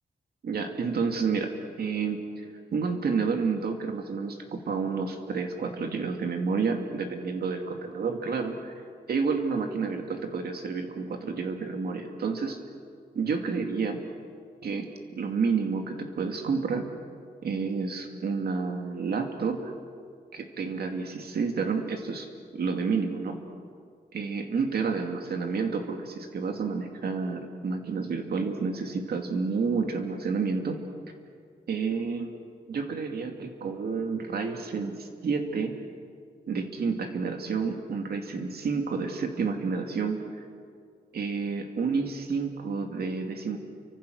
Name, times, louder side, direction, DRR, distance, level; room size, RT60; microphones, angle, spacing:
voice 1, 0.4-2.5 2.7-8.7 9.1-12.6 13.1-14.0 14.6-16.9 17.4-19.7 20.3-23.4 24.1-30.8 31.7-32.3 32.7-35.8 36.5-40.2 41.1-43.6, right 5 dB, 75° right, 4 dB, 2.4 m, -30 dB
30.0 x 25.0 x 6.5 m, 2.2 s
wide cardioid pair, 165°, 16 cm